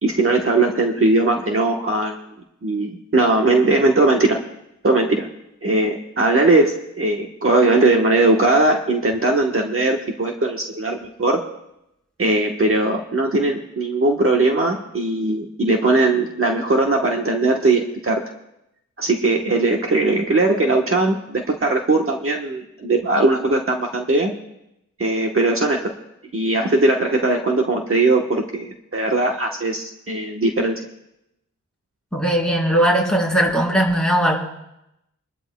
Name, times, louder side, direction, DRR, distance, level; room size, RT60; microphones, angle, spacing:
voice 1, 0.0-2.2 2.6-4.4 4.8-5.3 5.6-11.4 12.2-18.2 19.0-24.3 25.0-25.9 26.3-30.8, right 2 dB, 45° right, 1 dB, 1.2 m, -19 dB
voice 2, 32.1-34.4, right 1 dB, ahead, -3 dB, 3.6 m, -18 dB
24.5 x 12.5 x 2.3 m, 0.85 s
wide cardioid pair, 105°, 30 cm